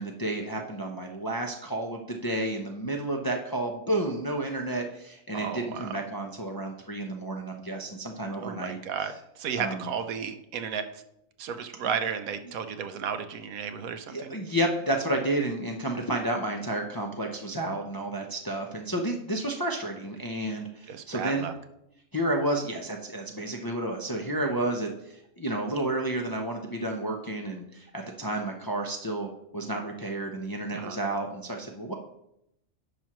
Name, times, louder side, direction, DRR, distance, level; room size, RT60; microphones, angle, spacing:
voice 1, 0.0-8.8 9.6-9.9 14.1-21.5 22.1-31.9, right 1 dB, 25° left, 1 dB, 0.5 m, -31 dB
voice 2, 5.3-6.0 8.4-11.0 11.4-14.3 20.9-21.5 30.7-31.0, right 7 dB, 85° right, 9 dB, 1.2 m, -33 dB
10.5 x 6.0 x 3.0 m, 0.80 s
omnidirectional pair, 1.4 m